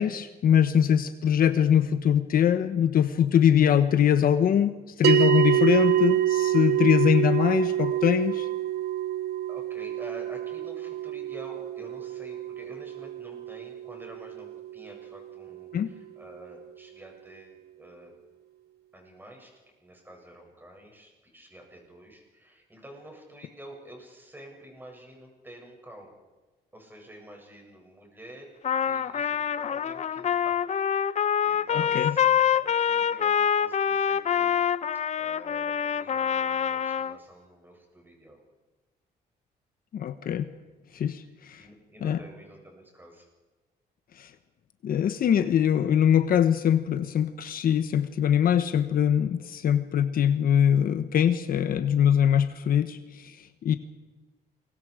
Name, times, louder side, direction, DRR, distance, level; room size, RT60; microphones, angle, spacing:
voice 1, 0.0-8.5 15.7-15.9 31.7-32.2 39.9-40.5 40.9-41.6 42.0-42.2 44.2-44.3 44.8-53.8, left 9 dB, 60° left, 10 dB, 1.2 m, -23 dB
sound 1, 5.0-15.6, right 13 dB, 75° right, 0.7 m, -27 dB
voice 2, 9.5-18.1 18.9-19.5 19.8-26.1 26.7-34.6 34.9-38.4 40.9-43.3 49.4-49.5, right 1 dB, 10° right, 1 dB, 7.9 m, -48 dB
Trumpet, 28.6-37.2, left 8 dB, 45° left, 0.7 m, -26 dB
29.0 x 23.0 x 5.1 m, 1.2 s
cardioid pair, 105°, 16 cm